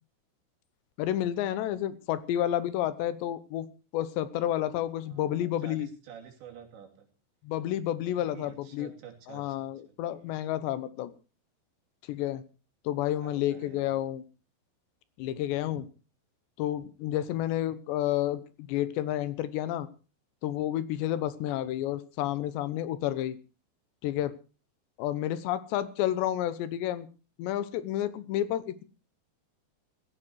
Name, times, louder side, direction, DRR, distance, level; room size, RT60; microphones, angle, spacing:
voice 1, 1.0-3.7 3.9-5.9 7.4-8.9 9.3-11.1 12.1-12.4 12.8-14.2 15.2-15.9 16.6-19.9 20.4-23.4 24.0-24.3 25.0-27.1 27.4-28.8, left 12 dB, 85° left, 15 dB, 3.3 m, -30 dB
voice 2, 5.1-7.1 8.0-10.3 13.2-14.0 15.6-15.9, right 8 dB, 85° right, 2 dB, 5.0 m, -50 dB
16.0 x 15.0 x 4.7 m, 0.34 s
omnidirectional pair, 4.9 m